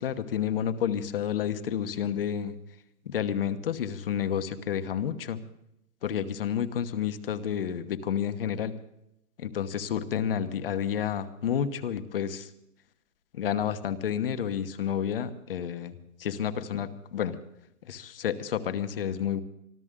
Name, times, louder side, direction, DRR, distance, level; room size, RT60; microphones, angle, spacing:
voice 1, 0.0-2.5 3.1-5.4 6.0-8.7 9.4-12.5 13.3-15.9 16.2-17.4 17.9-19.4, left 9 dB, 40° left, 10 dB, 1.1 m, -30 dB
25.0 x 14.0 x 3.7 m, 0.81 s
hypercardioid pair, 170°, 43 cm